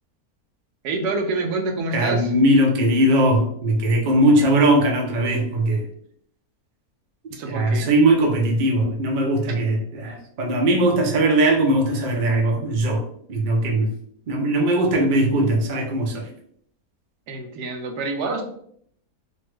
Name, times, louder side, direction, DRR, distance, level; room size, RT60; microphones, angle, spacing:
voice 1, 0.8-2.3 7.3-7.9 9.4-9.6 17.3-18.4, right 3 dB, 85° right, 4 dB, 1.2 m, -27 dB
voice 2, 1.9-5.9 7.5-13.0 13.3-13.9 14.3-16.3, right 1 dB, 65° right, 1 dB, 0.5 m, -19 dB
3.0 x 2.2 x 3.1 m, 0.65 s
omnidirectional pair, 1.7 m